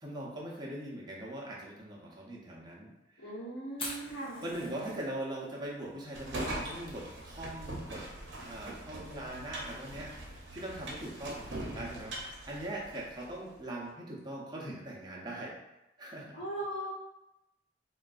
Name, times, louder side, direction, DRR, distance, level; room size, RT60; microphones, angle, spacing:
voice 1, 0.0-3.3 4.4-8.1 8.4-15.6 16.0-16.4, right 1 dB, 20° right, -4 dB, 0.6 m, -41 dB
voice 2, 3.2-4.4 16.3-16.9, right 1 dB, 75° left, -7 dB, 1.1 m, -39 dB
Fire, 3.7-13.5, left 1 dB, 30° left, 0.6 m, -50 dB
sound 1, 6.1-13.3, right 1 dB, 65° right, 0.7 m, -42 dB
3.8 x 2.3 x 2.4 m, 0.92 s
head